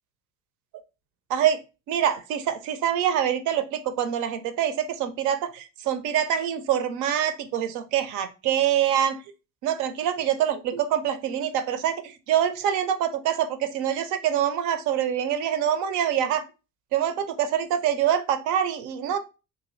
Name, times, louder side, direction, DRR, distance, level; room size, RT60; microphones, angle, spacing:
voice 1, 1.9-9.2 9.6-16.4 16.9-19.2, right 9 dB, 40° right, 10 dB, 0.5 m, -25 dB
2.7 x 2.5 x 3.0 m, 0.30 s
figure-of-eight pair, 60°, 46 cm